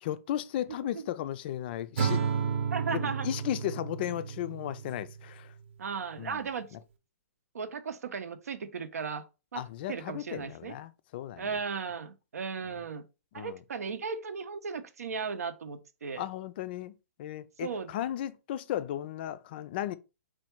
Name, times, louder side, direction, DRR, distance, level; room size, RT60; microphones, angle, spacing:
voice 1, 0.0-2.2 2.9-5.5 6.2-6.4 6.7-6.8 9.6-11.6 12.7-12.8 13.3-13.6 16.2-16.9 17.2-19.9, left 12 dB, 40° left, 0.3 m, -35 dB
Acoustic guitar / Strum, 2.0-5.3, right 6 dB, 50° right, 0.7 m, -32 dB
voice 2, 2.7-3.3 5.8-6.7 7.5-9.3 9.5-9.6 9.9-10.7 11.4-13.1 13.3-16.2 17.6-17.9, right 5 dB, 90° right, 0.6 m, -36 dB
4.4 x 2.3 x 4.3 m
hypercardioid pair, 155°, 8 cm